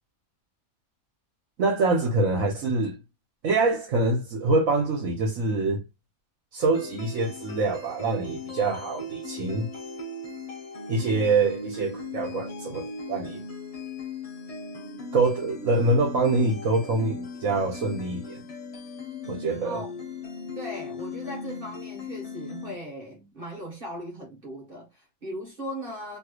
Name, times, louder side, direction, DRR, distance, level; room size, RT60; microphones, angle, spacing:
voice 1, 1.6-3.0 3.4-5.8 6.5-9.7 10.9-13.4 15.1-18.4 19.3-19.8, right 3 dB, 70° right, 1.3 m, -25 dB
sound 1, 6.7-22.7, left 3 dB, 30° left, 0.8 m, -38 dB
voice 2, 20.5-26.2, equal, 40° right, 1.3 m, -38 dB
3.1 x 3.0 x 2.3 m
omnidirectional pair, 1.5 m